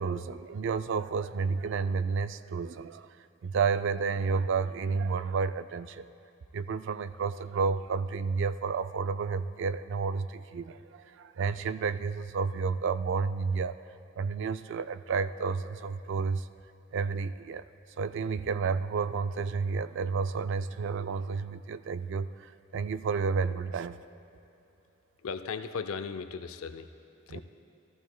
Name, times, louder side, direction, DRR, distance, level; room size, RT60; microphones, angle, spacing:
voice 1, 0.0-3.1 3.4-6.0 6.5-13.8 14.2-16.5 16.9-17.6 18.0-24.0 27.3-27.4, right 5 dB, 55° right, 12 dB, 0.3 m, -31 dB
voice 2, 25.2-26.9 27.3-27.4, left 5 dB, 80° left, 9 dB, 0.5 m, -36 dB
14.5 x 14.0 x 2.2 m, 2.9 s
head